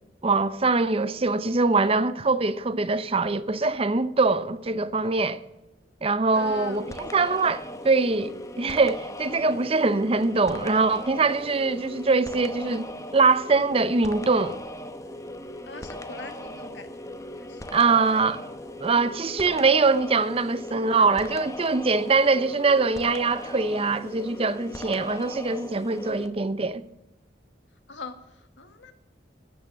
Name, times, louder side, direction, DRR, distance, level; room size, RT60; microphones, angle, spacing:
voice 1, 0.2-5.4 6.0-12.9 13.1-14.6 17.7-18.4 18.8-26.8, right 4 dB, 30° right, 0.6 m, -23 dB
voice 2, 6.3-6.8 15.6-17.8 27.9-28.9, left 3 dB, 90° left, 1.6 m, -42 dB
sound 1, 6.3-26.3, left 1 dB, 20° left, 0.8 m, -39 dB
13.0 x 8.2 x 7.4 m
head